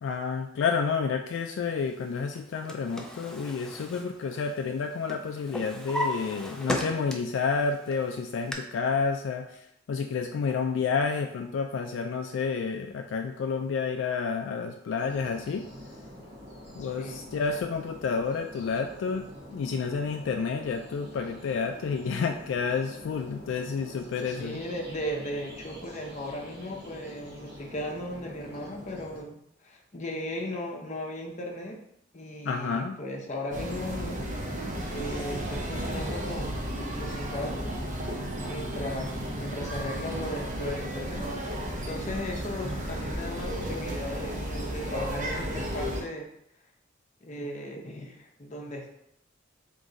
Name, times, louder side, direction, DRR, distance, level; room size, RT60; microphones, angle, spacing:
voice 1, 0.0-15.7 16.8-19.2 19.5-24.6 32.4-33.0, left 5 dB, 70° left, 4 dB, 0.3 m, -30 dB
Drawer open or close, 2.3-4.8 5.1-7.4 7.9-8.5, equal, 5° left, 0.4 m, -35 dB
sound 1, 15.0-29.2, equal, 60° right, 1.1 m, -46 dB
voice 2, 16.8-17.3 24.3-31.8 32.1-34.2 34.9-36.6 36.9-37.8 38.4-46.3 47.2-48.9, left 1 dB, 40° left, 0 dB, 0.7 m, -37 dB
sound 2, 33.5-46.0, equal, 40° right, 0.8 m, -33 dB
3.8 x 3.0 x 3.8 m, 0.76 s
head